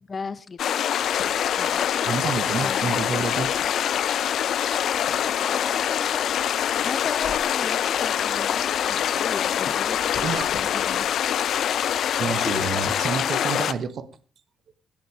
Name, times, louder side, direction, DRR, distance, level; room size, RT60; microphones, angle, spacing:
voice 1, 0.1-1.0 1.6-2.1 2.6-2.9 4.8-5.1 5.4-11.2 12.0-13.0, left 5 dB, 35° left, 13 dB, 1.0 m, -37 dB
sound 1, 0.6-13.7, left 9 dB, 70° left, 0.8 m, -24 dB
sound 2, 1.0-13.3, left 8 dB, 85° left, 3.9 m, -43 dB
voice 2, 2.0-3.5 10.2-10.5 10.9-11.1 12.2-14.1, right 6 dB, 55° right, 12 dB, 1.4 m, -29 dB
18.0 x 8.5 x 4.9 m, 0.37 s
cardioid pair, 90°, 0 cm